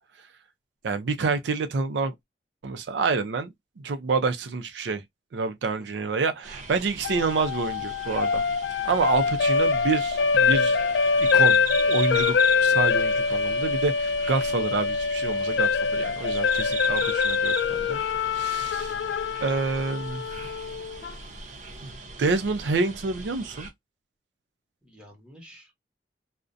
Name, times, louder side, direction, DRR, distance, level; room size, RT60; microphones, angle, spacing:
voice 1, 0.8-2.1 2.6-3.5 3.8-5.0 5.3-8.5 8.8-10.8 11.2-18.0 18.3-19.0 19.4-20.2 21.8-21.9 22.2-23.7, right 4 dB, 80° right, 0.4 m, -28 dB
sound 1, 6.4-23.7, right 4 dB, 45° right, 0.7 m, -39 dB
sound 2, 7.0-21.1, left 5 dB, 75° left, 0.3 m, -24 dB
voice 2, 9.0-9.4 18.6-19.1 24.8-25.7, equal, 5° right, 0.9 m, -51 dB
2.4 x 2.1 x 2.4 m
head